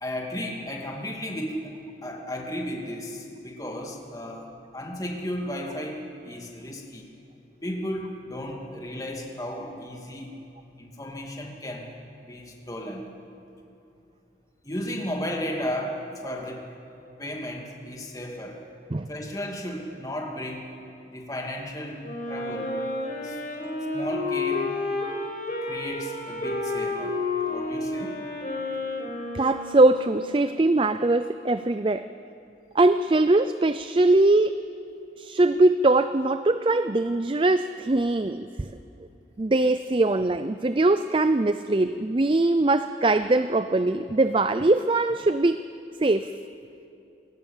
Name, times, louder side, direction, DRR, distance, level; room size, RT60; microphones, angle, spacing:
voice 1, 0.0-7.1 7.6-10.3 10.8-11.9 12.3-13.1 14.6-16.7 17.2-18.6 19.1-20.7 21.1-22.7 23.2-23.4 23.9-24.8 25.6-27.2 27.5-28.2, left 1 dB, 20° left, 1 dB, 2.5 m, -34 dB
Wind instrument woodwind instrument, 22.0-30.4, left 2 dB, 45° left, 5.2 m, -31 dB
voice 2, 29.3-32.1 32.7-34.6 35.2-38.7 39.4-45.6 46.0-46.3, right 2 dB, 30° right, 11 dB, 0.4 m, -22 dB
28.0 x 17.5 x 7.3 m, 2.8 s
head